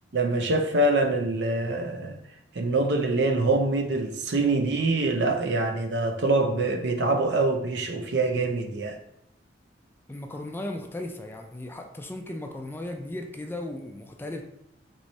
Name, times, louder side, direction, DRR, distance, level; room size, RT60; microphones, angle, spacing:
voice 1, 0.1-2.2 2.6-9.0, right 2 dB, 65° right, 5 dB, 0.6 m, -25 dB
voice 2, 10.1-14.4, left 1 dB, 10° left, 4 dB, 0.3 m, -36 dB
4.5 x 3.1 x 2.7 m, 0.76 s
head